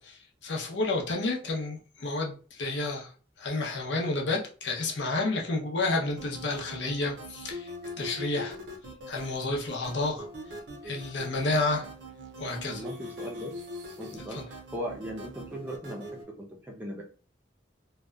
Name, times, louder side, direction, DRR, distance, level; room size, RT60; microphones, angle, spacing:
voice 1, 0.0-3.1 3.4-7.7 8.0-8.5 9.1-10.3 10.8-11.9 12.4-12.8 14.3-14.4, left 2 dB, 80° left, 0 dB, 0.7 m, -30 dB
sound 1, 6.2-16.2, left 1 dB, 80° right, 0.5 m, -42 dB
voice 2, 12.7-13.5 14.0-17.0, equal, 10° right, 0 dB, 0.4 m, -38 dB
2.7 x 2.2 x 2.3 m, 0.39 s
head